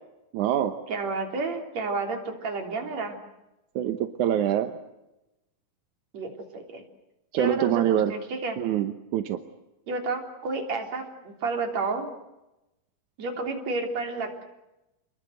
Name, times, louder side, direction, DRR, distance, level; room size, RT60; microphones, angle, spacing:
voice 1, 0.3-0.7 3.8-4.7 7.3-8.1 8.6-9.4, right 11 dB, 65° right, 8 dB, 2.2 m, -25 dB
voice 2, 0.9-3.2 6.1-6.8 7.3-8.6 9.9-12.1 13.2-14.4, right 3 dB, 45° right, 4 dB, 4.4 m, -31 dB
28.5 x 21.5 x 7.9 m, 0.96 s
omnidirectional pair, 4.3 m